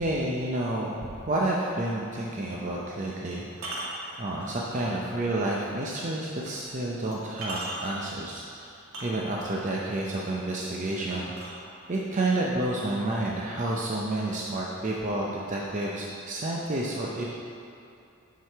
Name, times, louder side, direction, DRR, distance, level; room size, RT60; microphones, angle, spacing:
voice 1, 0.0-3.5 4.2-8.7 9.0-11.3 11.9-17.2, right 1 dB, 35° right, -3 dB, 0.6 m, -30 dB
sound 1, 1.8-2.0 3.5-5.0 5.5-5.6 6.5-6.6 7.1-8.1 8.8-9.6 11.1-12.1 13.0-13.1 13.5-13.9 14.2-15.1, right 2 dB, 75° right, 1.9 m, -39 dB
7.9 x 4.8 x 5.7 m, 2.6 s
head